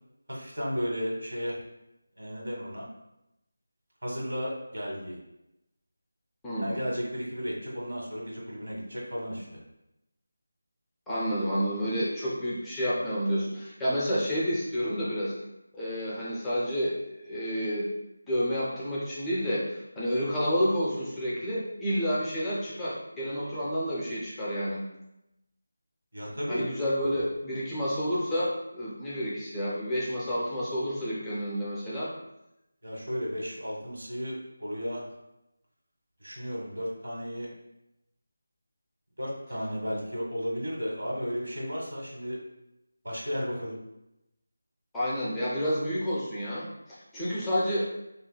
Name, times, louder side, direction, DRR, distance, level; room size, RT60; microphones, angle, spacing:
voice 1, 0.3-1.6 2.2-2.8 4.0-5.2 6.6-9.6 26.1-26.6 32.8-35.0 36.2-37.5 39.2-42.4 43.0-43.8, equal, 80° right, -3 dB, 1.5 m, -34 dB
voice 2, 6.4-6.8 11.1-15.3 15.7-17.9 18.3-24.8 26.5-32.1 44.9-47.8, equal, 5° left, -8 dB, 0.5 m, -30 dB
6.0 x 2.4 x 2.2 m, 0.88 s
figure-of-eight pair, 175°, 0 cm